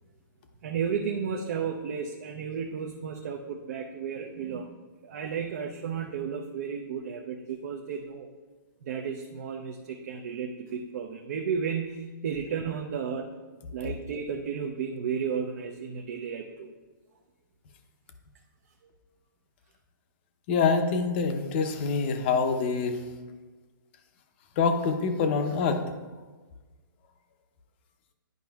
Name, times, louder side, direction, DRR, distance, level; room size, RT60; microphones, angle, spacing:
voice 1, 0.6-4.7 5.0-8.3 8.8-13.3 13.7-16.7, right 6 dB, 45° right, 2 dB, 0.5 m, -33 dB
voice 2, 20.5-23.0 24.6-25.8, left 5 dB, 30° left, 6 dB, 0.6 m, -25 dB
10.5 x 5.1 x 2.3 m, 1.3 s
hypercardioid pair, 160°, 11 cm